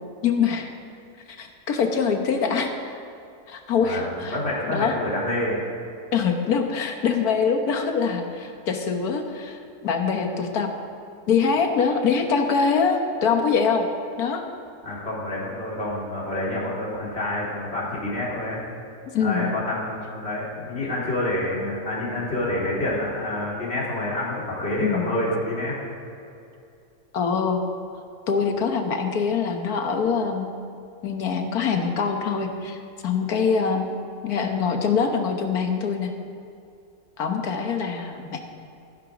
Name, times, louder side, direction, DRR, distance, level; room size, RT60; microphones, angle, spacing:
voice 1, 0.2-0.7 1.3-2.9 3.5-4.4 4.7-5.0 6.1-10.7 11.3-13.8 14.2-14.4 19.1-19.5 24.8-25.2 27.1-27.6 28.3-30.5 31.0-33.9 34.2-36.1 37.2-38.4, left 5 dB, 75° left, 5 dB, 1.7 m, -24 dB
voice 2, 3.8-5.6 14.8-18.6 19.2-25.8, left 1 dB, 40° left, -6 dB, 3.5 m, -28 dB
15.5 x 11.0 x 5.0 m, 2.6 s
omnidirectional pair, 1.6 m